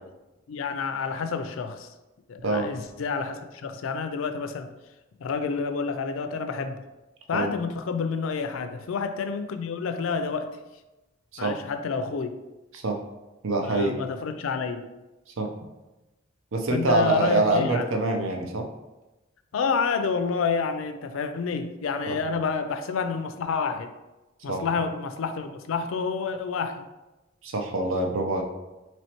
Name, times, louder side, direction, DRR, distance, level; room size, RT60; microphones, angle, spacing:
voice 1, 0.5-1.9 2.3-4.7 5.2-6.8 7.3-10.5 11.4-12.3 13.7-14.9 16.7-17.9 19.5-23.9 24.4-26.9, left 5 dB, 85° left, 8 dB, 0.4 m, -29 dB
voice 2, 13.4-14.0 15.4-15.5 16.5-18.7 22.1-22.2 24.5-24.6 27.4-28.4, right 2 dB, 85° right, 3 dB, 0.6 m, -25 dB
4.3 x 3.0 x 2.9 m, 1.0 s
head